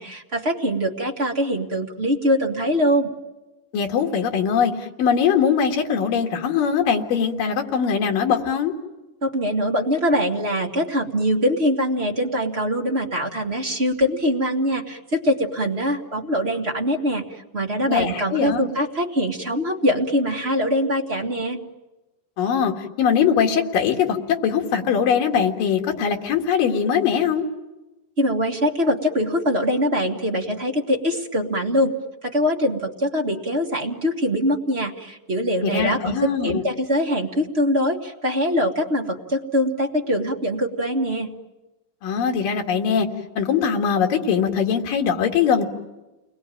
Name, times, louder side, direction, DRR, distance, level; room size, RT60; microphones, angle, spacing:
voice 1, 0.0-3.1 9.2-21.6 28.2-31.9 32.2-41.3, equal, 30° right, 0 dB, 1.2 m, -23 dB
voice 2, 3.7-8.7 17.9-18.7 22.4-27.5 35.6-36.6 42.0-43.1 43.4-45.7, left 7 dB, 85° left, 3 dB, 3.6 m, -21 dB
30.0 x 21.0 x 9.1 m, 1.1 s
omnidirectional pair, 3.8 m